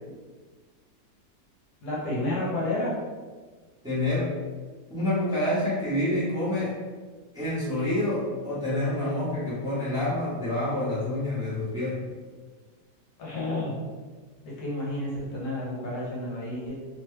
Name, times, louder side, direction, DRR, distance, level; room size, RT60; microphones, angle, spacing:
voice 1, 1.8-2.9 13.2-13.7 14.6-16.7, left 1 dB, 65° left, -5 dB, 1.2 m, -30 dB
voice 2, 3.8-4.4 4.9-6.8 7.3-12.0, left 1 dB, 5° right, -10 dB, 0.7 m, -27 dB
2.9 x 2.2 x 3.2 m, 1.4 s
omnidirectional pair, 1.8 m